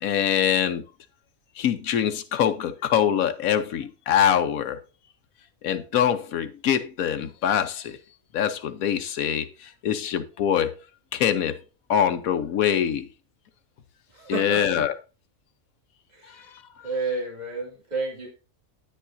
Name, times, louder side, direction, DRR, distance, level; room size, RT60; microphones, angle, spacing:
voice 1, 0.0-0.8 1.6-4.8 5.6-8.0 8.3-10.7 11.1-11.6 11.9-13.1 14.3-14.9, left 9 dB, 80° left, 1.2 m, -24 dB
voice 2, 14.1-14.8 16.1-16.5 16.8-18.3, right 3 dB, 30° right, 2.6 m, -31 dB
10.0 x 9.0 x 2.6 m
omnidirectional pair, 1.4 m